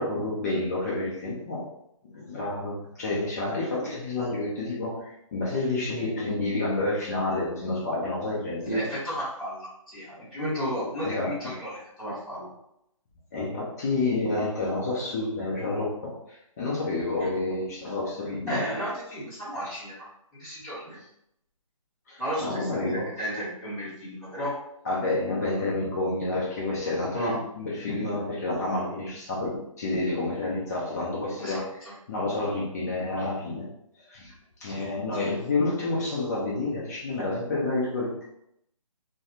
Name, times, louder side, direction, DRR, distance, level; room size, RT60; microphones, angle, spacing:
voice 1, 0.0-1.6 2.1-8.8 11.0-11.5 13.3-18.6 22.1-23.1 24.8-31.8 32.1-33.7 34.1-34.3 34.6-38.2, left 2 dB, 30° left, -5 dB, 0.7 m, -29 dB
voice 2, 8.7-12.5 18.5-20.1 20.4-21.0 22.2-22.8 23.2-24.5 27.1-27.3 31.4-31.9 34.6-35.3, equal, 5° right, -15 dB, 1.4 m, -33 dB
3.3 x 2.1 x 2.8 m, 0.78 s
figure-of-eight pair, 155°, 18 cm